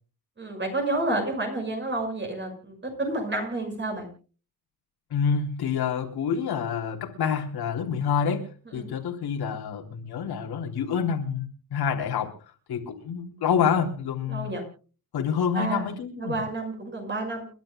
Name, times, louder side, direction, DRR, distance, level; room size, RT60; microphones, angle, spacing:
voice 1, 0.4-4.1 8.8-8.9 14.3-14.6 15.5-15.9 16.2-17.5, right 2 dB, 30° right, 3 dB, 6.0 m, -30 dB
voice 2, 5.1-12.4 12.7-14.6 15.1-16.4, left 7 dB, 80° left, 2 dB, 3.6 m, -27 dB
30.0 x 12.0 x 2.3 m, 0.36 s
cardioid pair, 140°, 38 cm